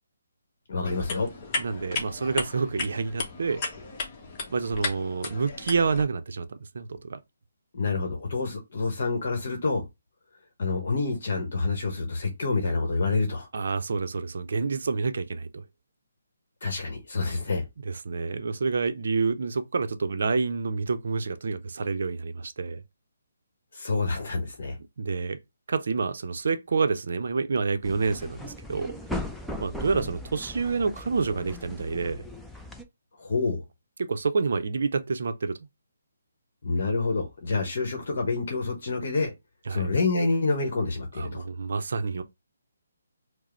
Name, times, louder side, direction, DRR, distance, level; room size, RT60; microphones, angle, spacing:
voice 1, 0.7-1.3 7.7-9.8 10.6-13.5 16.6-17.6 23.7-24.8 33.2-33.6 36.6-39.3 39.7-41.5, left 3 dB, 55° left, 0.9 m, -27 dB
sound 1, 0.8-6.0, left 3 dB, 30° left, 0.9 m, -35 dB
voice 2, 1.6-3.6 4.5-7.2 13.5-15.6 17.9-22.8 25.0-25.4 25.7-28.9 29.6-32.2 34.0-35.6 39.7-39.9 41.2-42.2, right 4 dB, 60° right, 0.5 m, -28 dB
sound 2, 27.8-32.8, left 1 dB, ahead, 0.4 m, -38 dB
4.7 x 2.0 x 3.0 m
figure-of-eight pair, 145°, 0 cm